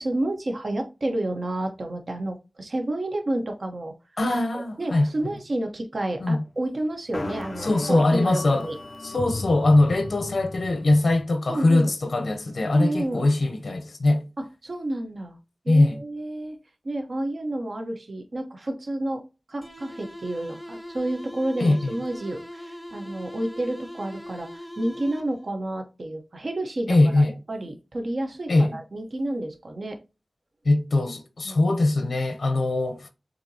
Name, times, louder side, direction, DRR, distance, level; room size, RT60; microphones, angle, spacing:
voice 1, 0.0-3.9 4.5-8.8 11.5-11.9 12.7-13.2 14.4-15.4 15.6-16.6 16.8-30.0 31.4-31.6, right 1 dB, 65° right, 1.0 m, -30 dB
voice 2, 4.2-5.1 6.2-6.4 7.6-8.7 9.0-14.2 15.7-16.0 21.6-21.8 26.9-27.3 28.5-28.8 30.6-33.1, left 2 dB, 90° left, 0.7 m, -21 dB
sound 1, 7.1-11.3, left 2 dB, 45° left, 0.3 m, -36 dB
sound 2, 19.6-25.6, equal, 5° right, 0.7 m, -41 dB
6.9 x 2.8 x 2.8 m
wide cardioid pair, 60°, 0 cm